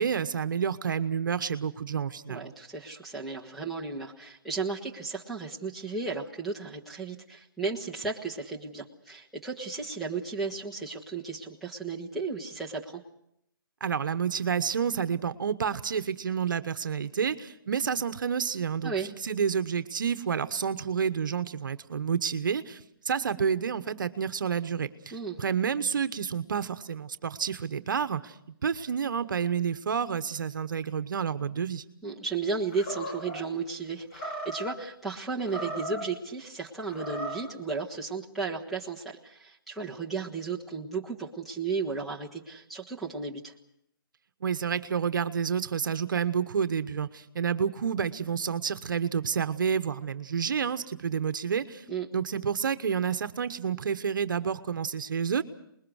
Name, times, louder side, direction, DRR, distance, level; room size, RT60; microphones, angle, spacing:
voice 1, 0.0-2.5 13.8-18.9 19.2-28.3 28.6-31.8 44.4-51.8 52.1-55.4, right 7 dB, 60° right, 12 dB, 1.2 m, -29 dB
voice 2, 2.3-13.0 18.8-19.1 25.1-25.4 32.0-43.5 51.9-52.1, right 4 dB, ahead, -6 dB, 1.4 m, -34 dB
Animal, 32.7-33.4 34.1-34.8 35.4-36.1 36.8-37.5, right 1 dB, 35° left, 4.1 m, -37 dB
26.0 x 21.0 x 6.4 m, 0.74 s
hypercardioid pair, 165°, 12 cm